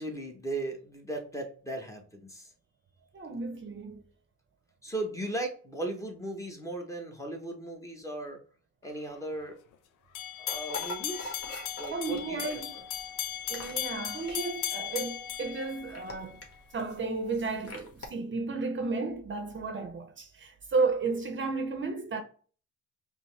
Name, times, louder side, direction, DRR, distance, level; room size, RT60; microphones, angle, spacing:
voice 1, 0.0-2.5 4.8-8.4 8.8-9.6 10.4-11.4 11.8-12.4, right 2 dB, 10° left, 0.9 m, -37 dB
voice 2, 3.1-4.0 11.9-12.7 13.5-16.4 16.7-22.2, right 4 dB, 40° right, 0.6 m, -33 dB
sound 1, 10.1-16.4, left 11 dB, 85° left, 0.5 m, -37 dB
sound 2, 10.5-18.1, left 2 dB, 50° left, 1.3 m, -44 dB
5.3 x 2.0 x 3.2 m
cardioid pair, 90°, 30 cm